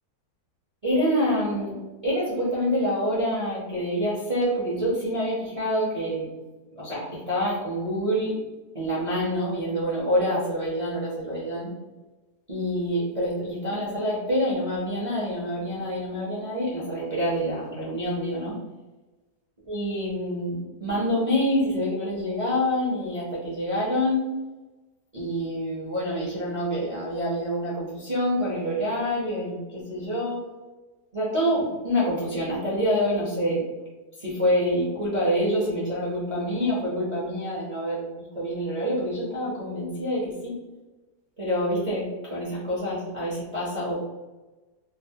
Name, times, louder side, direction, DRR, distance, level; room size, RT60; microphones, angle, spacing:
voice 1, 0.8-1.8 2.0-6.3 6.7-8.4 8.7-11.7 12.5-18.6 19.7-24.3 25.1-30.4 31.1-33.6 34.2-40.6 41.4-44.0, equal, 35° right, -8 dB, 0.5 m, -26 dB
3.1 x 2.0 x 2.7 m, 1.1 s
omnidirectional pair, 1.7 m